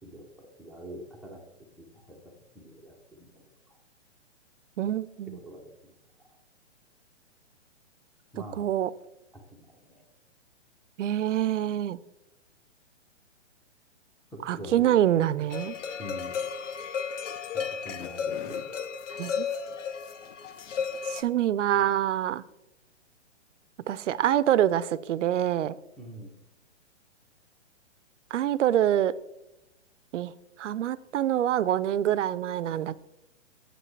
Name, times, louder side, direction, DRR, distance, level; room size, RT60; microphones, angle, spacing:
voice 1, 0.0-1.4 1.8-2.2 2.5-3.8 5.3-5.9 8.3-8.7 9.3-10.0 14.3-15.0 16.0-16.4 17.5-18.6 26.0-26.3, equal, ahead, 1 dB, 0.6 m, -44 dB
voice 2, 4.8-5.4 8.6-8.9 11.0-12.0 14.5-15.8 19.2-19.5 21.1-22.4 23.9-25.7 28.3-29.1 30.1-30.3 30.6-33.0, right 11 dB, 75° right, 18 dB, 0.5 m, -25 dB
sound 1, 15.5-21.2, left 6 dB, 85° left, 0.7 m, -34 dB
7.6 x 7.3 x 3.2 m, 0.90 s
hypercardioid pair, 140°, 36 cm